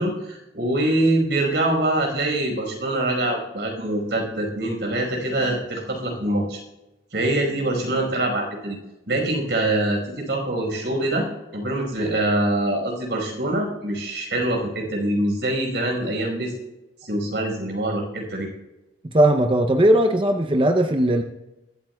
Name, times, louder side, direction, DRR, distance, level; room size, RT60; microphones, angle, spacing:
voice 1, 0.0-6.6 7.1-8.8 9.1-11.3 11.5-16.5 17.0-18.5, right 1 dB, 80° right, 0 dB, 5.0 m, -24 dB
voice 2, 19.1-21.2, right 1 dB, 30° right, 5 dB, 0.6 m, -18 dB
22.5 x 13.5 x 2.3 m, 0.98 s
head